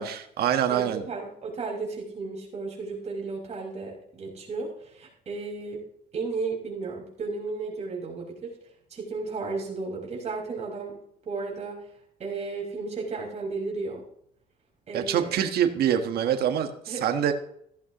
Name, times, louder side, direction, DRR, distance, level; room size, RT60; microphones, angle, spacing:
voice 1, 0.0-1.0 14.9-17.3, right 9 dB, 65° right, 6 dB, 1.5 m, -25 dB
voice 2, 0.7-5.8 6.1-8.6 8.9-11.0 11.3-11.9 12.2-14.0 14.9-15.3 16.9-17.0, right 4 dB, 40° right, -3 dB, 5.3 m, -34 dB
15.5 x 15.0 x 3.1 m, 0.69 s
cardioid pair, 110°, 17 cm